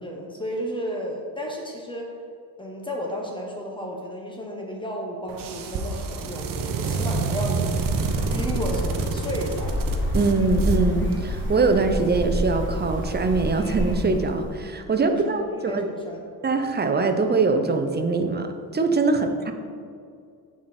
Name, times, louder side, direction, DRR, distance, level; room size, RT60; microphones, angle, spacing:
voice 1, 0.0-2.1 2.6-7.8 8.3-9.8 15.0-16.3 19.1-19.5, equal, 15° left, 0 dB, 1.3 m, -33 dB
sound 1, 5.3-11.7, right 4 dB, 60° right, 0.9 m, -29 dB
sound 2, 7.7-14.6, left 1 dB, 30° left, 1.4 m, -28 dB
voice 2, 10.1-15.9 16.4-19.5, right 3 dB, 25° right, 6 dB, 0.7 m, -23 dB
9.3 x 4.9 x 4.3 m, 2.3 s
cardioid pair, 100°, 38 cm